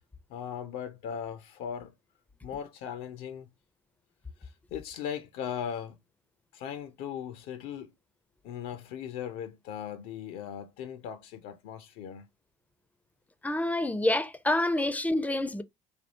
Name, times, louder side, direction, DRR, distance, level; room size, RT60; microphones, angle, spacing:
voice 1, 0.3-1.9 2.4-3.5 4.4-6.0 6.5-7.9 8.4-12.2, left 8 dB, 65° left, 0.4 m, -38 dB
voice 2, 13.4-15.6, left 1 dB, 10° left, 0.4 m, -27 dB
3.4 x 2.3 x 2.6 m
hypercardioid pair, 55°, 16 cm